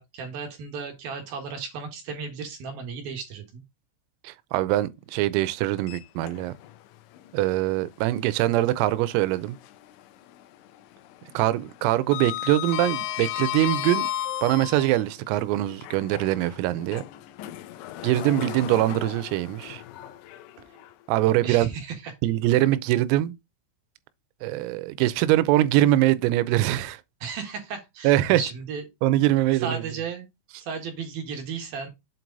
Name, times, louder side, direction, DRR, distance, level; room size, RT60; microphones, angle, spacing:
voice 1, 0.0-3.6 21.4-22.1 27.2-28.8 29.6-30.3 30.6-31.9, right 5 dB, 60° right, 2.7 m, -34 dB
voice 2, 4.2-6.5 7.3-9.6 11.3-14.1 14.4-17.0 18.0-19.8 21.1-21.7 22.2-23.4 24.4-27.0 28.0-28.4 29.0-29.8, right 15 dB, 90° right, 3.4 m, -23 dB
Sliding door, 5.8-6.8 7.2-7.3 9.0-10.0 10.3-10.7 10.9-15.0 15.7-20.9, left 13 dB, 85° left, 2.7 m, -34 dB
8.0 x 4.7 x 3.9 m
omnidirectional pair, 5.9 m